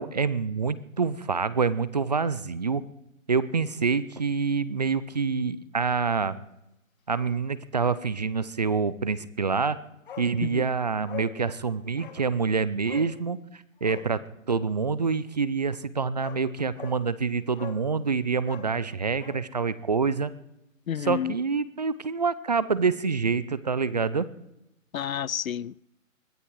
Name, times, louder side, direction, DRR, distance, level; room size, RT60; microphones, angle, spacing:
voice 1, 0.0-2.8 3.3-6.4 7.1-9.8 10.2-14.2 14.5-20.3 21.0-24.3, right 5 dB, 30° right, 0.5 m, -26 dB
Bark, 10.1-10.3 10.6-10.7 11.1-11.3 12.0-12.2 12.9-13.1 13.8-14.1 15.7-15.8 16.2-16.4 16.8-17.0 17.6-17.9 18.4-19.4 19.7-19.8, left 9 dB, 40° left, 1.7 m, -42 dB
voice 2, 20.9-21.3 24.9-25.9, left 9 dB, 90° left, 0.6 m, -30 dB
21.0 x 13.0 x 4.7 m
hypercardioid pair, 155°, 40 cm